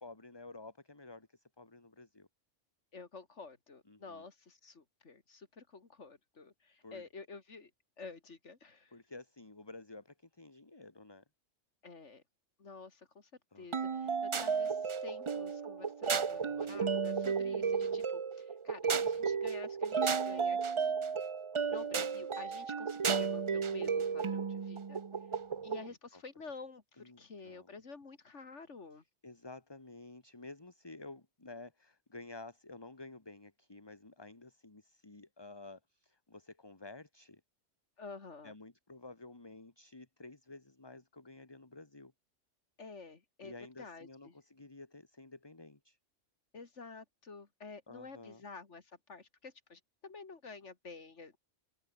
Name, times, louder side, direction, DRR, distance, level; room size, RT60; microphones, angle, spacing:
voice 1, 0.0-2.3 3.9-4.3 6.8-7.0 8.9-11.2 13.5-14.3 17.5-17.6 26.1-26.2 27.0-27.8 29.2-37.4 38.4-42.1 43.4-46.0 47.9-48.4, left 2 dB, 20° left, 1.7 m, -52 dB
voice 2, 2.9-7.7 8.0-8.9 11.8-12.2 12.6-13.3 13.6-21.0 21.7-25.0 25.6-29.0 38.0-38.5 42.8-44.3 46.5-51.4, left 4 dB, 70° left, 2.7 m, -50 dB
sound 1, 13.7-25.9, right 6 dB, 35° right, 0.5 m, -33 dB
omnidirectional pair, 1.3 m